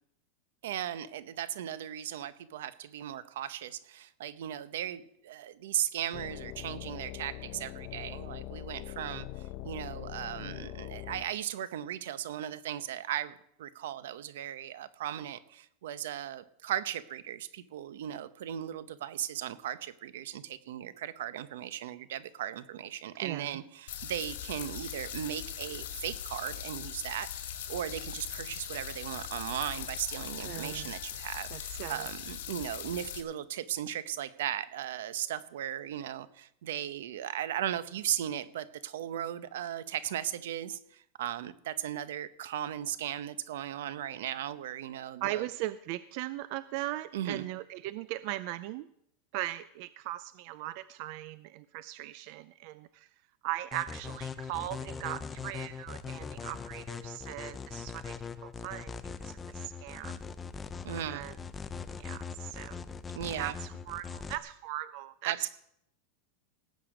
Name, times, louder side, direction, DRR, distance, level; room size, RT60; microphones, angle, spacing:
voice 1, 0.6-9.3 9.6-45.4 47.1-47.5 60.8-61.3 63.1-63.6 65.2-65.5, right 11 dB, 80° right, 15 dB, 0.8 m, -37 dB
sound 1, 6.1-11.3, left 14 dB, 45° left, 0.9 m, -42 dB
voice 2, 23.2-23.6 30.4-30.9 31.5-32.1 45.2-48.9 49.3-53.1 53.4-58.9 59.2-60.2 61.0-61.3 62.0-62.8 63.4-65.5, right 16 dB, 50° right, 15 dB, 0.4 m, -39 dB
sound 2, 23.9-33.2, left 10 dB, 80° left, 2.3 m, -40 dB
sound 3, 53.7-64.4, left 5 dB, 15° left, 0.6 m, -41 dB
18.0 x 8.4 x 5.1 m, 0.74 s
supercardioid pair, 155°, 0 cm